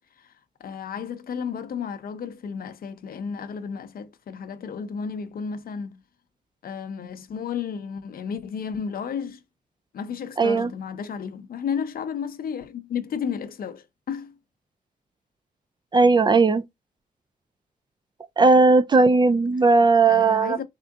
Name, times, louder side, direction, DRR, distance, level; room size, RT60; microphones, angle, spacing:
voice 1, 0.6-6.0 6.6-9.4 9.9-14.4 20.1-20.6, left 7 dB, 70° left, 0.6 m, -32 dB
voice 2, 10.4-10.7 15.9-16.6 18.4-20.6, right 3 dB, 30° right, 0.3 m, -17 dB
3.6 x 3.6 x 2.4 m
cardioid pair, 95°, 16 cm